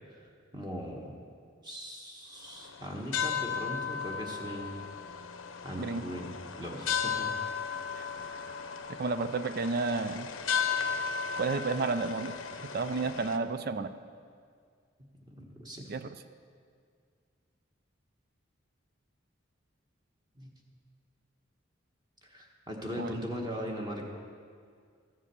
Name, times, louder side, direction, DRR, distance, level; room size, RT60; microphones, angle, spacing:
voice 1, 0.5-1.1 1.6-4.8 5.6-7.3 15.4-15.8 20.4-20.5 22.2-24.0, equal, 20° right, 0 dB, 1.2 m, -39 dB
sound 1, 2.5-13.4, left 6 dB, 85° left, 0.8 m, -35 dB
voice 2, 5.8-6.1 8.0-8.1 9.0-10.3 11.4-12.4 12.7-13.9 15.9-16.1 23.0-23.1, right 4 dB, 50° right, 12 dB, 0.4 m, -31 dB
13.5 x 7.4 x 6.8 m, 2.1 s
head